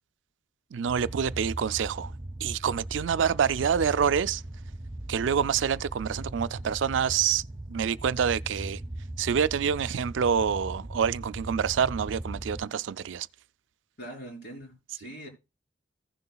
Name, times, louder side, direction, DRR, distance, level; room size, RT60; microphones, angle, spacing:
voice 1, 0.7-2.1 2.4-4.4 5.1-7.4 7.7-8.8 9.2-13.3, right 7 dB, 75° right, 0.4 m, -27 dB
sound 1, 0.9-12.6, right 1 dB, 20° right, 0.7 m, -39 dB
voice 2, 14.0-15.3, right 1 dB, 55° left, 3.7 m, -42 dB
15.5 x 6.8 x 2.3 m
head